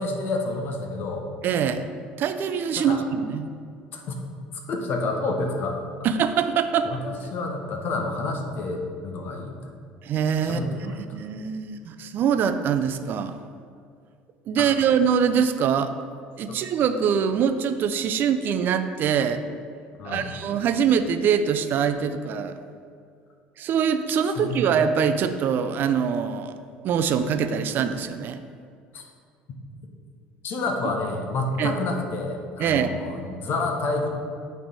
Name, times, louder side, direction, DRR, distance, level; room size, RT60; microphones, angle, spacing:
voice 1, 0.0-1.3 2.7-3.0 3.9-4.2 4.7-5.8 6.8-9.6 10.4-11.0 14.6-14.7 16.5-16.6 20.0-20.3 24.2-24.6 28.9-29.0 30.4-34.1, left 3 dB, 55° left, 3 dB, 1.1 m, -29 dB
voice 2, 1.4-1.9 2.2-3.5 6.0-6.9 10.0-13.3 14.5-15.9 16.4-19.4 20.0-22.6 23.6-26.6 26.8-28.4 31.6-31.7 32.6-32.9, right 7 dB, 55° right, 10 dB, 0.4 m, -23 dB
8.7 x 3.4 x 4.0 m, 2.2 s
supercardioid pair, 80°, 4 cm